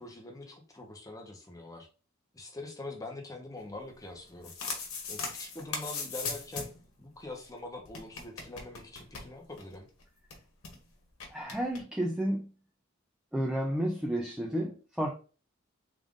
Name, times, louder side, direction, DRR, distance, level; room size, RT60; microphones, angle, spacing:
voice 1, 0.0-1.9 2.3-4.5 5.1-6.7 7.0-9.9, left 2 dB, 15° left, 0.8 m, -44 dB
sound 1, 4.2-6.9 7.1-7.2 7.4-7.5 7.9-9.7 10.0-10.1 10.3-10.8 11.2-11.8, left 4 dB, 85° left, 1.1 m, -39 dB
voice 2, 11.3-12.5 13.3-15.1, right 1 dB, 5° right, 0.4 m, -31 dB
3.6 x 2.5 x 3.6 m
head